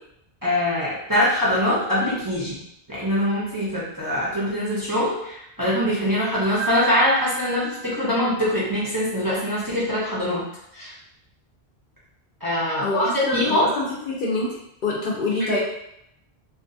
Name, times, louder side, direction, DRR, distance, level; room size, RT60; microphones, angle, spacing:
voice 1, 0.4-2.6 2.9-10.4 10.7-10.9 12.4-13.7 15.5-15.6, left 1 dB, 25° right, -8 dB, 0.6 m, -23 dB
Piano, 6.6-8.7, right 5 dB, 65° right, 0.9 m, -32 dB
voice 2, 12.8-14.5 14.8-15.6, left 2 dB, 60° left, -3 dB, 0.7 m, -25 dB
2.5 x 2.3 x 2.5 m, 0.78 s
omnidirectional pair, 1.1 m